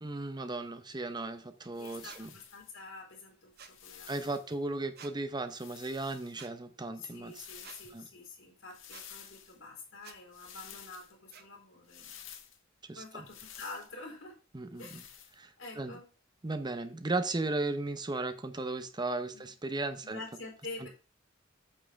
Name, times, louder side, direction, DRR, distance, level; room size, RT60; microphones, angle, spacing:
voice 1, 0.0-2.3 4.1-7.5 7.9-8.1 12.9-13.2 14.5-14.9 15.4-15.5 15.8-15.9 16.4-20.2, right 2 dB, 20° right, 0.7 m, -36 dB
sound 1, 1.7-2.7 3.5-4.5 5.5-6.4 7.2-8.0 8.7-9.6 10.3-11.1 11.9-12.6 13.2-13.9 14.8-15.4, left 9 dB, 75° left, 1.5 m, -51 dB
voice 2, 1.8-4.4 6.9-12.3 13.0-14.4 14.8-15.1 15.6-16.1 19.3-19.5 20.0-20.9, left 3 dB, 90° left, 4.3 m, -47 dB
sound 2, 2.1-2.2 3.6-3.8 5.0-5.1 6.4-6.5 7.6-7.8 8.9-9.1 10.0-10.2 11.3-11.5, right 7 dB, 55° right, 1.0 m, -50 dB
8.8 x 7.4 x 3.5 m
head